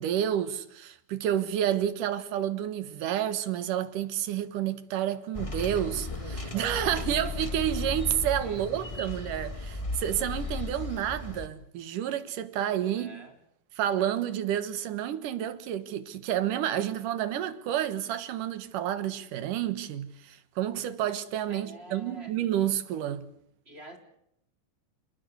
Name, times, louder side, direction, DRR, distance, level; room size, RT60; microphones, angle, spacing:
voice 1, 0.0-13.1 13.8-23.3, right 11 dB, 85° right, 3.0 m, -30 dB
sound 1, 5.3-11.5, left 3 dB, 30° left, 0.6 m, -35 dB
voice 2, 8.4-8.9 12.8-13.4 21.5-22.4 23.7-24.0, right 1 dB, 20° right, 3.7 m, -48 dB
28.0 x 19.5 x 8.2 m
omnidirectional pair, 3.6 m